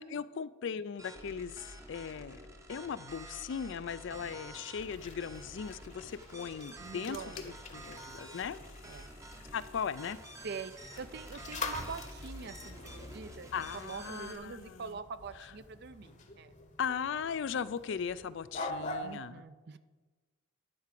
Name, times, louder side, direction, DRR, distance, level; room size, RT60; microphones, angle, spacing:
voice 1, 0.0-2.4 2.7-8.6 9.5-10.2 13.5-14.8 16.8-19.4, left 7 dB, 60° left, 16 dB, 0.4 m, -38 dB
sound 1, 1.0-14.4, right 1 dB, 15° right, 0.7 m, -50 dB
sound 2, 4.7-19.2, left 2 dB, 35° left, 0.9 m, -46 dB
sound 3, 6.5-14.9, left 7 dB, 75° left, 1.4 m, -59 dB
voice 2, 6.8-7.6 8.8-9.1 10.4-16.5 19.0-19.8, right 5 dB, 50° right, 13 dB, 0.5 m, -44 dB
10.5 x 4.9 x 7.5 m, 1.3 s
head